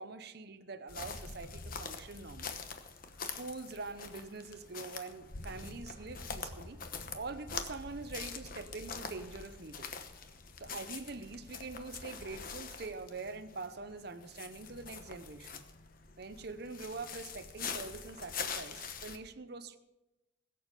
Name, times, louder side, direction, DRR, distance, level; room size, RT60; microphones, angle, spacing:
voice 1, 0.0-2.6 3.2-6.8 7.1-9.9 10.6-15.6 16.2-19.8, right 3 dB, 60° right, 11 dB, 0.8 m, -44 dB
sound 1, 0.9-19.2, left 5 dB, 50° left, 1.0 m, -44 dB
21.0 x 7.1 x 5.0 m, 1.0 s
head